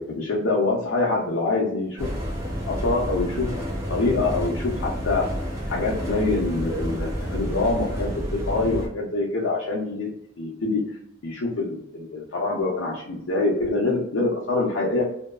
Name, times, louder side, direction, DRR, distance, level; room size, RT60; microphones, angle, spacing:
voice 1, 0.0-2.1 2.7-5.3 5.7-10.1 10.4-10.8 11.2-15.0, left 3 dB, 70° left, -4 dB, 0.5 m, -25 dB
sound 1, 2.0-8.9, equal, 15° right, 0.7 m, -30 dB
2.6 x 2.3 x 2.3 m, 0.75 s
head